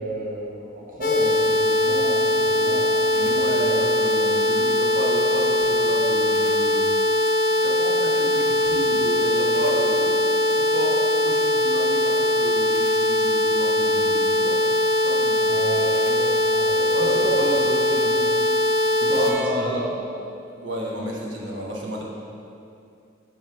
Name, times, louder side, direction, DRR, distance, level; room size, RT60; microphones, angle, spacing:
voice 1, 0.0-3.9 15.5-17.5 17.9-18.3 19.0-20.0, right 1 dB, 45° right, -5 dB, 0.7 m, -32 dB
sound 1, 1.0-19.3, left 1 dB, 45° left, 0.8 m, -21 dB
voice 2, 3.1-14.6 15.0-16.0 16.7-17.9 18.8-19.9 20.6-22.0, equal, 80° right, -2 dB, 1.1 m, -32 dB
7.4 x 3.2 x 5.8 m, 2.6 s
head